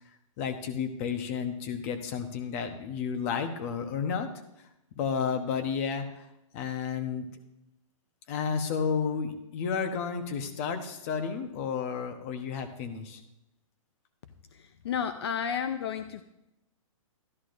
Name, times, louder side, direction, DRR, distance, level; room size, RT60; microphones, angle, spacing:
voice 1, 0.4-4.3 5.0-6.3 6.5-7.3 8.3-13.2, left 6 dB, 25° left, 7 dB, 0.9 m, -32 dB
voice 2, 14.8-16.2, left 8 dB, 50° left, 9 dB, 0.6 m, -31 dB
13.5 x 11.0 x 2.6 m, 0.87 s
hypercardioid pair, 165°, 17 cm